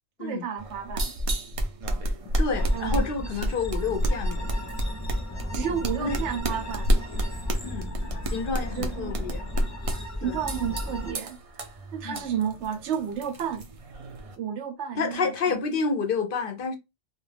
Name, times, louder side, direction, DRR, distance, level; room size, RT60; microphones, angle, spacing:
voice 1, 0.2-1.1 2.7-3.3 5.5-6.9 8.7-9.1 10.2-11.4 11.9-13.7 14.4-15.6, right 8 dB, 85° right, 0.9 m, -32 dB
sound 1, 0.6-14.4, equal, 50° right, 0.4 m, -30 dB
voice 2, 2.4-4.5 6.0-6.2 7.6-7.9 8.3-9.5 10.2-10.4 12.0-12.2 15.0-16.8, left 5 dB, 60° left, 0.7 m, -29 dB
sound 2, 2.5-11.1, left 1 dB, 25° left, 0.4 m, -36 dB
2.3 x 2.2 x 3.2 m
omnidirectional pair, 1.1 m